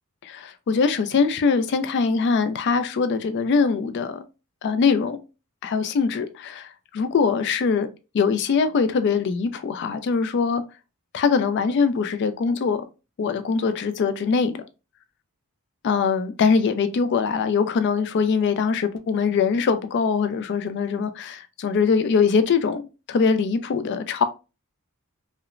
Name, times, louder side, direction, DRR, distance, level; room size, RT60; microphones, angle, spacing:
voice 1, 0.2-4.2 4.6-5.2 5.6-7.9 8.1-10.6 11.1-12.8 13.2-14.6 15.8-24.2, left 5 dB, 50° left, 0.3 m, -22 dB
2.9 x 2.0 x 2.3 m
head